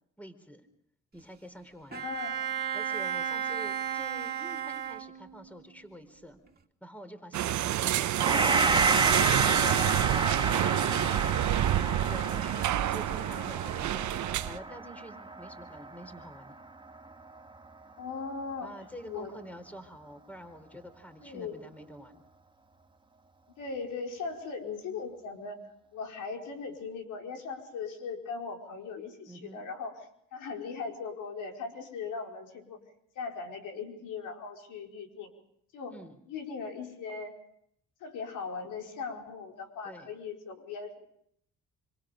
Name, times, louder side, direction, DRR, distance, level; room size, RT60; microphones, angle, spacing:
voice 1, 0.2-0.7 1.1-2.0 2.7-6.4 6.8-9.8 11.5-14.1 14.4-16.5 18.6-22.2 29.3-29.6 35.9-36.2 39.8-40.1, equal, 5° left, 8 dB, 4.3 m, -47 dB
voice 2, 1.9-2.5 18.0-18.8 19.0-19.3 21.2-21.6 23.6-30.1 30.3-32.8 33.1-35.3 35.7-36.0 36.3-37.3 38.0-41.1, left 5 dB, 90° left, 2 dB, 5.0 m, -39 dB
Bowed string instrument, 1.9-5.6, right 8 dB, 30° right, 2.7 m, -34 dB
sound 1, 7.3-14.6, right 12 dB, 70° right, 1.0 m, -28 dB
Gong, 8.2-17.4, right 3 dB, 15° right, 1.7 m, -31 dB
27.0 x 26.0 x 5.3 m, 0.71 s
cardioid pair, 90°, 30 cm